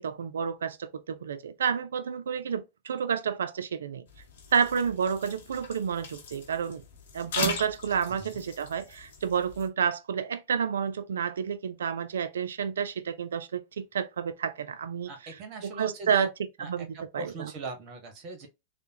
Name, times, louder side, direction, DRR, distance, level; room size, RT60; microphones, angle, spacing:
voice 1, 0.0-4.0 4.5-6.8 7.1-15.1 15.6-16.3 16.7-17.5, right 7 dB, 65° right, 0.4 m, -30 dB
sound 1, 4.1-9.7, left 4 dB, 55° left, 0.8 m, -39 dB
voice 2, 8.1-8.5 15.1-16.3 16.6-18.5, right 3 dB, 40° right, 0.9 m, -40 dB
3.4 x 2.1 x 2.7 m
figure-of-eight pair, 90°, 0 cm